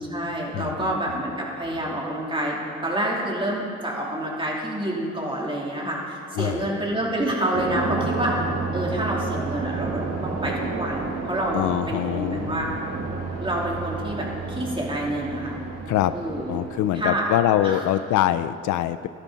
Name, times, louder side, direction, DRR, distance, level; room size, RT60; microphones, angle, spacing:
voice 1, 0.0-8.4 8.7-12.7 13.4-15.6 16.1-16.6 16.9-17.3 17.6-17.8, right 1 dB, 15° right, -3 dB, 3.3 m, -28 dB
voice 2, 0.5-0.9 6.3-6.7 11.5-12.7 15.9-16.1 16.5-19.1, left 12 dB, 75° left, 13 dB, 0.5 m, -24 dB
sound 1, 7.5-16.9, right 3 dB, 55° right, 2.0 m, -31 dB
16.5 x 12.5 x 4.1 m, 2.6 s
cardioid pair, 90°, 30 cm